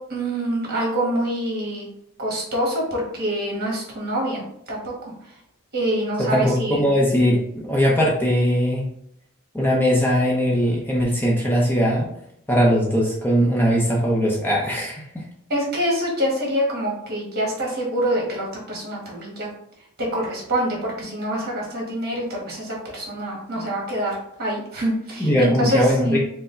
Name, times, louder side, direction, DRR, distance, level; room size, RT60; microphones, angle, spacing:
voice 1, 0.1-1.9 2.2-4.4 4.7-5.1 5.7-6.8 15.5-19.5 20.1-26.2, equal, 45° right, -2 dB, 1.5 m, -25 dB
voice 2, 6.2-8.8 9.5-12.1 12.5-15.2 25.2-26.2, equal, 10° left, -3 dB, 0.6 m, -20 dB
4.6 x 2.1 x 3.8 m, 0.73 s
head